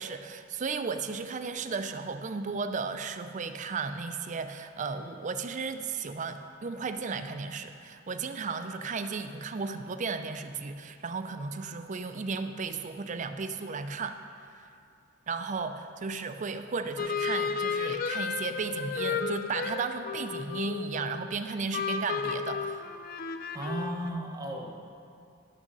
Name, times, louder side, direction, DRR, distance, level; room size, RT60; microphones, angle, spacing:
voice 1, 0.0-14.2 15.3-22.8, right 4 dB, 40° right, 9 dB, 0.5 m, -34 dB
sound 1, 17.0-21.3 21.7-24.1, left 5 dB, 45° left, 0.4 m, -33 dB
voice 2, 23.5-24.8, right 1 dB, 20° right, 0 dB, 1.1 m, -35 dB
11.0 x 6.2 x 5.3 m, 2.5 s
head